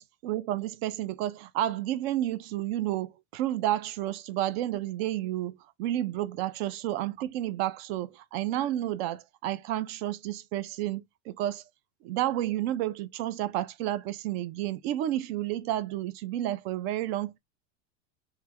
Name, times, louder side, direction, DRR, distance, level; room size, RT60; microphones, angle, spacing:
voice 1, 0.0-11.6 12.0-17.4, right 13 dB, 55° right, 0.5 m, -31 dB
3.2 x 2.4 x 3.1 m
supercardioid pair, 135°, 37 cm